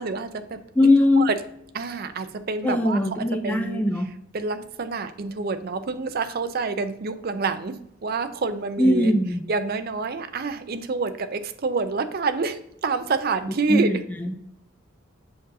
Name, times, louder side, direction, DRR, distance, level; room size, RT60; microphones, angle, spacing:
voice 1, 0.0-0.9 1.2-1.4 1.7-3.9 4.3-9.1 9.5-14.0, right 4 dB, 50° right, 10 dB, 0.5 m, -27 dB
voice 2, 0.8-1.3 2.6-4.1 8.8-9.4 13.7-14.4, left 1 dB, 10° left, 4 dB, 0.4 m, -21 dB
7.8 x 5.3 x 2.6 m, 0.75 s
head